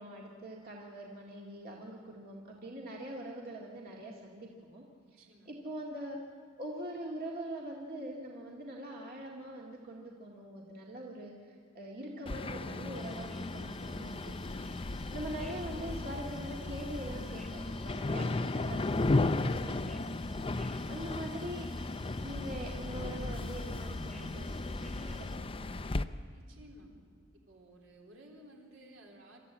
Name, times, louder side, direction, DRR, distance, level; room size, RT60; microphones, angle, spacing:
voice 1, 0.0-4.8 5.5-6.2 6.6-14.7 15.1-20.4 20.9-21.7 22.2-24.5 24.8-25.9, right 1 dB, 50° right, -2 dB, 2.0 m, -43 dB
voice 2, 5.1-5.5 26.3-26.9 27.3-29.4, right 1 dB, 75° right, 0 dB, 3.7 m, -56 dB
sound 1, 12.3-26.0, left 2 dB, 25° left, 0.5 m, -35 dB
sound 2, 12.9-25.4, left 1 dB, ahead, 1.0 m, -56 dB
27.5 x 13.5 x 8.8 m, 2.1 s
head